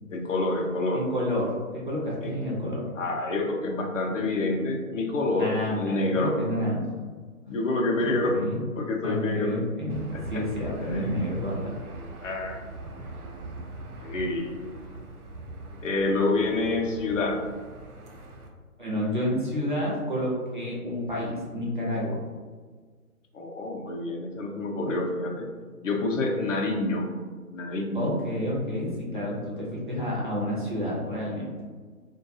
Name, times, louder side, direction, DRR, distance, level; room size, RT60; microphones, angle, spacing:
voice 1, 0.1-1.1 2.2-2.3 3.0-6.3 7.5-8.5 8.7-9.6 9.9-10.4 10.8-11.2 12.2-12.6 14.0-14.6 15.8-17.4 23.3-25.5 25.8-27.1 27.5-28.1, left 2 dB, 60° left, 2 dB, 0.5 m, -27 dB
voice 2, 0.9-2.8 5.4-6.8 8.1-8.6 9.0-11.8 18.8-22.2 27.9-31.5, left 1 dB, 35° right, -6 dB, 0.4 m, -30 dB
Aircraft / Engine, 9.9-18.5, right 2 dB, 80° right, 0.6 m, -41 dB
2.2 x 2.2 x 2.6 m, 1.5 s
hypercardioid pair, 155°, 44 cm